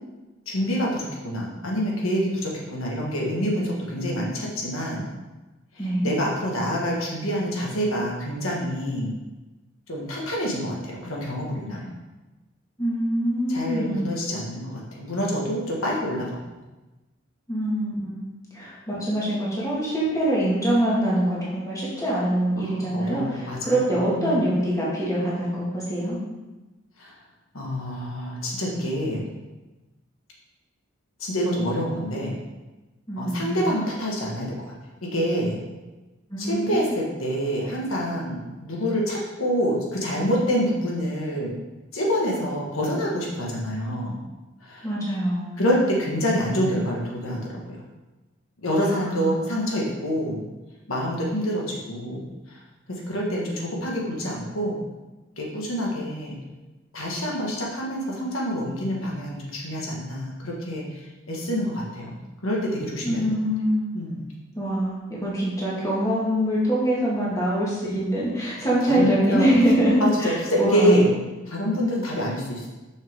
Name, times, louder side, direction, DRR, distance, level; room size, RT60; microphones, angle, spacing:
voice 1, 0.5-5.0 6.0-9.1 9.9-11.9 13.5-16.4 22.6-23.8 24.1-24.4 27.0-27.1 27.5-29.2 31.2-32.4 33.2-34.5 35.0-35.6 36.4-41.5 41.9-44.2 44.6-44.9 45.6-47.8 48.6-50.4 50.9-52.6 52.9-54.8 55.4-56.4 56.9-60.8 61.3-62.2 62.4-63.2 63.9-64.2 68.9-69.5 70.0-71.1 71.5-72.7, equal, 85° left, -2 dB, 1.6 m, -26 dB
voice 2, 5.8-6.2 12.8-14.1 17.5-18.2 18.5-26.2 33.1-33.7 36.3-37.0 44.8-45.6 48.8-49.6 63.0-63.9 64.6-71.1, right 1 dB, 15° left, -7 dB, 1.9 m, -24 dB
6.5 x 6.4 x 3.6 m, 1.1 s
head